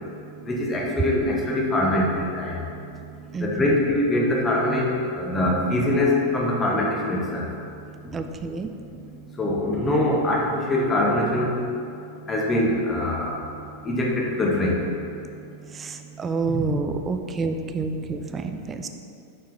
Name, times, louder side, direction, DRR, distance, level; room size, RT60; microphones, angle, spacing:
voice 1, 0.4-2.7 3.4-7.5 8.0-8.1 9.4-11.6 12.3-13.4 13.8-14.8 16.4-16.7, left 1 dB, 20° left, -2 dB, 1.0 m, -23 dB
voice 2, 3.3-3.8 8.1-8.7 15.7-18.9, right 4 dB, 20° right, 7 dB, 0.4 m, -29 dB
6.0 x 4.5 x 3.6 m, 2.6 s
figure-of-eight pair, 90°, 0 cm